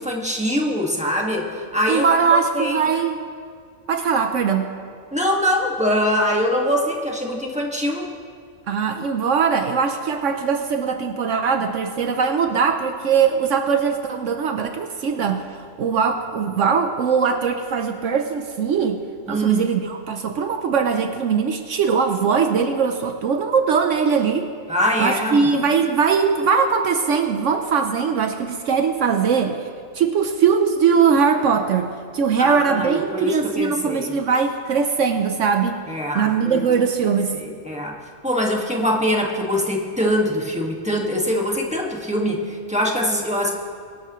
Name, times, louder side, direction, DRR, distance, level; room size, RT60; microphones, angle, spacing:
voice 1, 0.0-1.5 1.7-2.1 2.5-2.8 5.1-8.1 19.3-19.6 24.7-25.5 32.4-34.1 35.9-36.6 37.4-38.0 38.2-43.5, equal, 5° right, -2 dB, 1.6 m, -23 dB
voice 2, 1.9-3.2 3.9-4.7 8.7-19.0 19.3-24.5 25.0-29.7 29.9-35.8 36.1-37.3, right 6 dB, 70° right, 6 dB, 1.1 m, -21 dB
23.5 x 11.5 x 3.1 m, 2.1 s
omnidirectional pair, 1.3 m